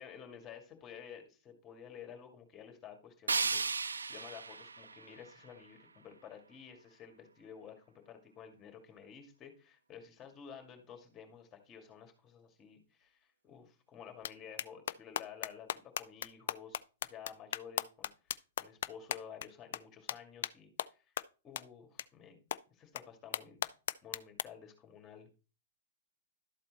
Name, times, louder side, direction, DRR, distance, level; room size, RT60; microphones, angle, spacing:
voice 1, 0.0-16.8 17.1-18.1 18.6-21.2 21.4-22.4 22.7-23.7 24.0-25.3, left 8 dB, 30° left, 5 dB, 2.3 m, -52 dB
sound 1, 3.3-6.3, right 4 dB, 90° right, 0.3 m, -36 dB
sound 2, 14.2-14.3 14.6-19.5 19.7-19.8 20.1-20.2 20.4-20.5 20.8-20.9 21.2-21.3 21.6-21.7 22.0-22.1 22.5-22.6 23.0-23.1 23.3-24.4, left 10 dB, 65° left, 0.4 m, -36 dB
12.5 x 4.2 x 4.2 m, 0.34 s
hypercardioid pair, 110°, 0 cm